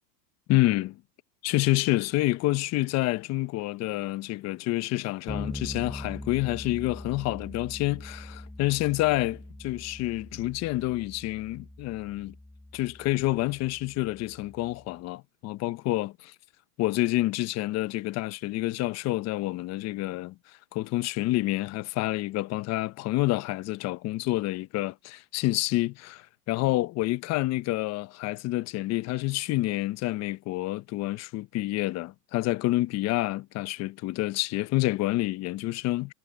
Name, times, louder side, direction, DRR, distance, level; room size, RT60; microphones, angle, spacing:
voice 1, 0.5-1.0 1.4-12.3 12.7-16.3 16.8-20.3 20.7-36.1, left 18 dB, 35° left, 1.1 m, -28 dB
Bass guitar, 5.3-14.9, left 1 dB, 5° left, 7.8 m, -42 dB
supercardioid pair, 135°, 47 cm